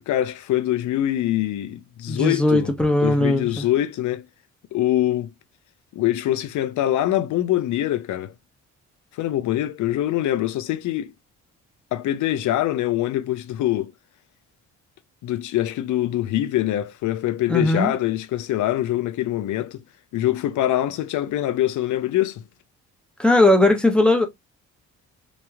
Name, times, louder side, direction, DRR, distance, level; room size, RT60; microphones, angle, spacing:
voice 1, 0.1-2.7 3.0-4.2 4.7-5.3 5.9-8.3 9.1-11.1 11.9-13.9 15.2-19.8 20.1-22.4, left 13 dB, 75° left, 0.6 m, -24 dB
voice 2, 2.1-3.6 17.5-17.9 23.2-24.3, left 2 dB, 5° left, 0.9 m, -18 dB
3.0 x 2.9 x 2.3 m
cardioid pair, 90°, 30 cm